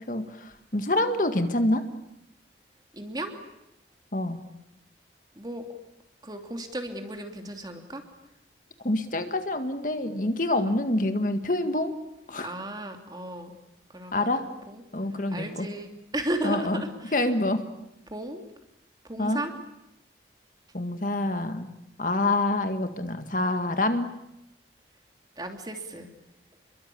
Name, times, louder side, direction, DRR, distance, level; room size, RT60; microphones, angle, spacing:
voice 1, 0.0-1.8 4.1-4.4 8.8-11.9 12.3-12.6 14.1-14.4 14.9-15.7 16.4-16.8 17.1-17.6 19.2-19.4 20.7-21.7 22.0-24.1, left 2 dB, 45° left, 8 dB, 1.9 m, -26 dB
voice 2, 2.9-3.3 5.4-5.6 6.2-8.0 12.4-13.5 13.9-14.8 15.3-17.1 18.1-18.4 19.0-19.5 25.4-26.1, right 1 dB, 20° right, 5 dB, 3.0 m, -34 dB
29.5 x 22.5 x 8.6 m, 0.85 s
head